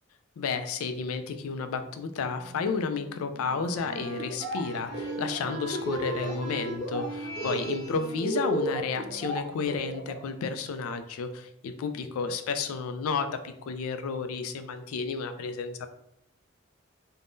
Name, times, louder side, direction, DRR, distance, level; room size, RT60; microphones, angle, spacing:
voice 1, 0.4-15.9, left 5 dB, 80° left, 8 dB, 0.3 m, -32 dB
Wind instrument woodwind instrument, 2.3-10.1, right 4 dB, 90° right, 0.3 m, -42 dB
sound 1, 3.8-8.3, left 1 dB, 50° left, 0.7 m, -45 dB
Laughter, 4.2-4.6 4.9-6.3 6.7-7.0 7.4-10.2, right 1 dB, 10° left, 0.8 m, -33 dB
3.4 x 2.1 x 2.5 m, 0.76 s
head